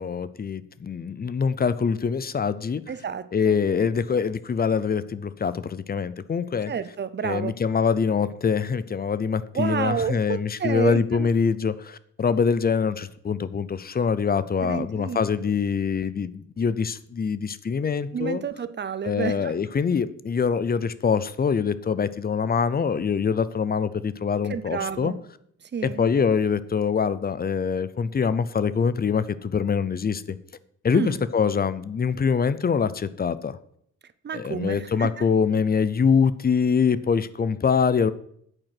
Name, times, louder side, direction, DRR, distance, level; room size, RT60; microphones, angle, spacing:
voice 1, 0.0-2.8 3.3-6.7 7.2-18.4 19.0-25.1 25.8-30.4 30.8-33.6 34.3-38.1, left 6 dB, 30° left, 16 dB, 0.5 m, -24 dB
voice 2, 2.9-3.6 6.7-7.5 9.5-11.3 14.6-15.5 18.1-19.5 24.5-25.2 25.7-26.0 30.9-31.2 34.2-35.3, right 7 dB, 35° right, 14 dB, 0.6 m, -30 dB
9.0 x 7.9 x 5.8 m, 0.67 s
wide cardioid pair, 165°, 30 cm